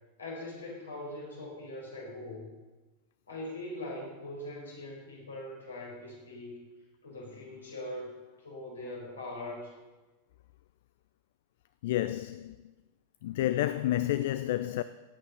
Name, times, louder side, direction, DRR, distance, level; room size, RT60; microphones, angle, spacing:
voice 1, 0.2-2.5 3.3-6.5 7.0-8.1 8.4-9.7, left 1 dB, 70° left, 4.7 m, -41 dB
voice 2, 11.8-12.6 13.2-14.8, left 14 dB, 55° left, 0.4 m, -30 dB
17.0 x 8.9 x 5.3 m
figure-of-eight pair, 90°, 0 cm